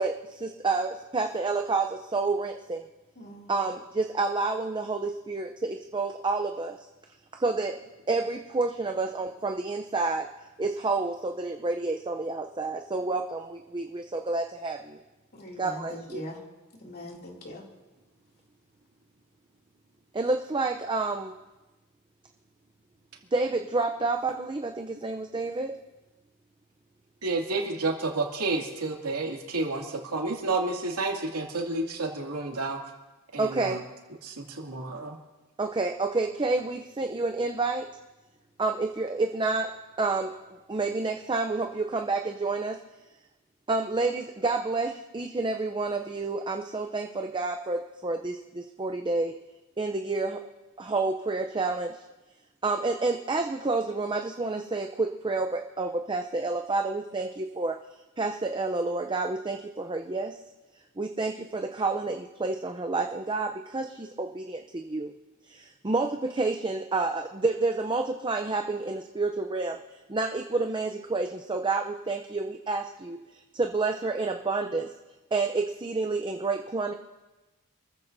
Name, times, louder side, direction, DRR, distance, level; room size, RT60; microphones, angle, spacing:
voice 1, 0.0-2.8 3.5-6.8 7.4-7.8 8.1-10.3 10.6-15.0 15.6-16.2 20.1-21.3 23.3-25.7 33.4-33.8 35.6-37.9 38.6-39.7 40.0-40.3 40.7-42.7 43.7-49.3 49.8-50.4 50.8-51.9 52.6-57.7 58.2-60.4 61.0-65.1 65.5-69.8 70.1-73.2 73.5-74.9 75.3-76.9, right 3 dB, 20° right, 4 dB, 0.5 m, -29 dB
voice 2, 3.2-3.5 15.3-16.4 16.8-17.6, left 1 dB, 45° left, -1 dB, 2.7 m, -41 dB
voice 3, 27.2-32.8 33.3-33.8 34.2-35.1, right 3 dB, 85° right, 0 dB, 2.5 m, -30 dB
27.0 x 14.5 x 2.7 m, 1.1 s
head